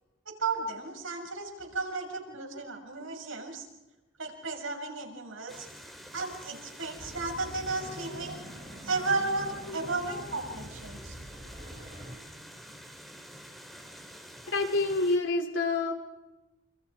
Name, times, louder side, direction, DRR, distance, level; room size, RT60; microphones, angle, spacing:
voice 1, 0.2-3.6 4.2-5.7 6.1-8.4 8.8-11.1, right 3 dB, 80° right, 2 dB, 6.8 m, -34 dB
sound 1, 5.5-15.2, equal, ahead, 3.8 m, -48 dB
sound 2, 7.0-12.2, equal, 30° right, 6.6 m, -45 dB
voice 2, 14.5-15.9, left 3 dB, 65° left, 3 dB, 4.8 m, -28 dB
29.0 x 28.0 x 4.9 m, 1.1 s
head